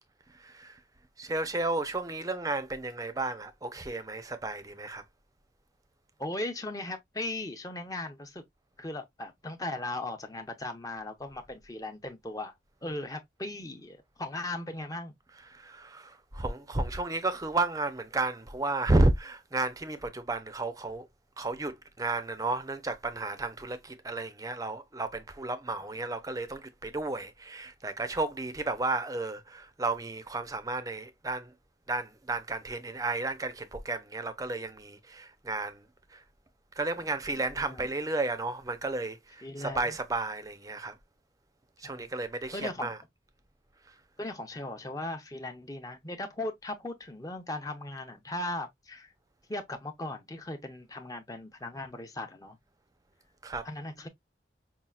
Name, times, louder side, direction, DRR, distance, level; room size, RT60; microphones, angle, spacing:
voice 1, 0.3-0.8 1.2-5.0 15.3-21.1 21.4-31.5 31.9-36.2 36.7-41.0 41.8-43.0 53.4-53.7, right 2 dB, 20° right, 0.6 m, -32 dB
voice 2, 6.2-8.4 8.8-12.5 12.8-15.1 37.4-37.9 39.4-40.0 41.8-42.1 42.5-42.9 44.2-49.1 49.5-52.6 53.6-54.1, left 2 dB, 20° left, 0.7 m, -38 dB
5.5 x 2.4 x 2.3 m
head